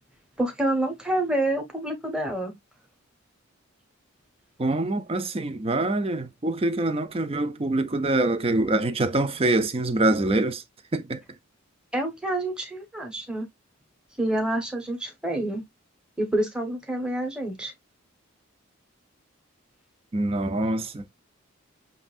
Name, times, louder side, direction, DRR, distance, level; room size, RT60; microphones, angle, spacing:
voice 1, 0.4-2.5 11.9-13.5 14.2-15.6 16.2-17.7, right 1 dB, 5° right, 1.2 m, -27 dB
voice 2, 4.6-10.6 10.9-11.2 20.1-21.0, right 2 dB, 25° right, 0.5 m, -25 dB
7.5 x 2.7 x 2.5 m
head